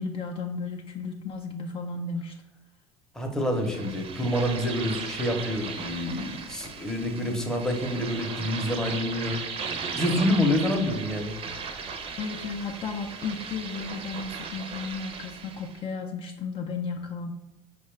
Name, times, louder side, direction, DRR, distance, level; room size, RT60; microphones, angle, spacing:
voice 1, 0.0-2.4 12.2-17.3, left 4 dB, 40° left, 2 dB, 0.4 m, -34 dB
voice 2, 3.1-9.4 10.0-11.4, left 1 dB, 5° left, 2 dB, 0.7 m, -27 dB
sound 1, 3.5-15.8, right 5 dB, 40° right, 0.5 m, -37 dB
4.6 x 2.2 x 3.2 m, 1.1 s
supercardioid pair, 100°, 15 cm